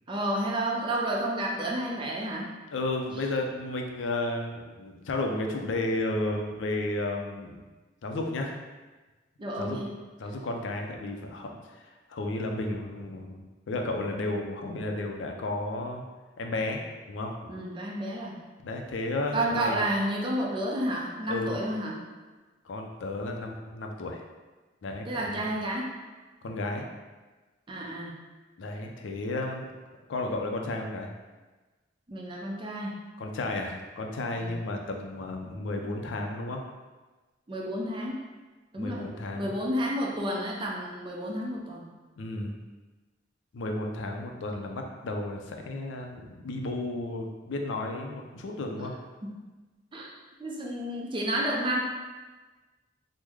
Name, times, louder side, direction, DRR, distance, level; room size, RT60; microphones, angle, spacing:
voice 1, 0.1-2.5 9.4-9.9 17.5-18.4 19.3-22.0 25.1-25.9 27.7-28.2 32.1-33.0 34.4-34.5 37.5-38.2 38.7-41.9 49.9-50.1 50.4-51.8, right 1 dB, 25° right, -2 dB, 0.5 m, -31 dB
voice 2, 2.7-7.6 8.0-8.5 9.6-9.8 10.2-16.0 16.4-16.8 17.1-17.5 18.6-19.8 21.3-21.5 22.6-24.2 24.8-25.5 26.4-26.9 28.6-29.7 30.1-31.1 33.2-36.6 38.8-39.5 42.2-42.6 43.5-48.9, left 2 dB, 90° left, 2 dB, 0.4 m, -33 dB
3.2 x 2.1 x 3.5 m, 1.3 s
head